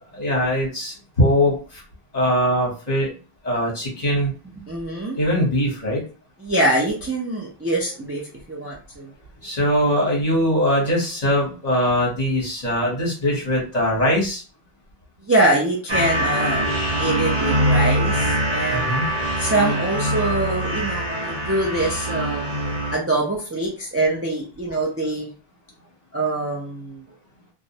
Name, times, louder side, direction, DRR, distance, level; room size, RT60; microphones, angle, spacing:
voice 1, 0.1-1.8 2.1-3.1 3.4-4.3 5.1-6.0 9.4-14.4 18.7-19.1, equal, 45° left, -2 dB, 1.0 m, -21 dB
voice 2, 4.6-5.2 6.4-8.2 8.5-9.1 15.2-16.7 17.0-18.9 19.4-22.5 22.9-25.3 26.1-27.0, right 2 dB, 25° right, -3 dB, 0.3 m, -24 dB
sound 1, 15.9-23.0, right 1 dB, 45° right, 0.8 m, -23 dB
2.3 x 2.0 x 2.7 m, 0.35 s
omnidirectional pair, 1.0 m